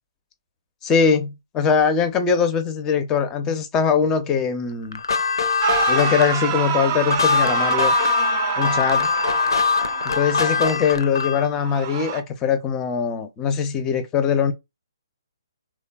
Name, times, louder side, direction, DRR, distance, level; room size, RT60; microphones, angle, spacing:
voice 1, 0.8-5.0 5.9-7.9 8.6-9.1 10.0-14.5, left 6 dB, 20° left, 0.5 m, -21 dB
sound 1, 4.9-11.5, left 5 dB, 70° left, 0.4 m, -22 dB
sound 2, 5.6-10.7 11.6-12.2, right 8 dB, 35° right, 0.5 m, -26 dB
3.2 x 2.2 x 2.2 m
figure-of-eight pair, 135°, 2 cm